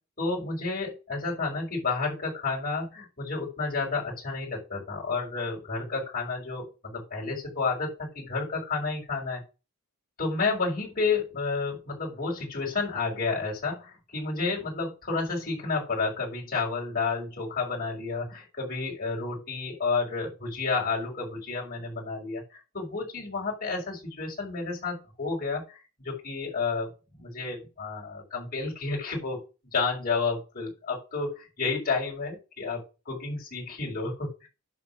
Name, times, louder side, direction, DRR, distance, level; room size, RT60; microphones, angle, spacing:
voice 1, 0.2-9.4 10.2-25.8 26.0-29.4 29.7-34.5, left 4 dB, 40° left, -3 dB, 5.9 m, -31 dB
11.0 x 4.3 x 7.3 m, 0.31 s
head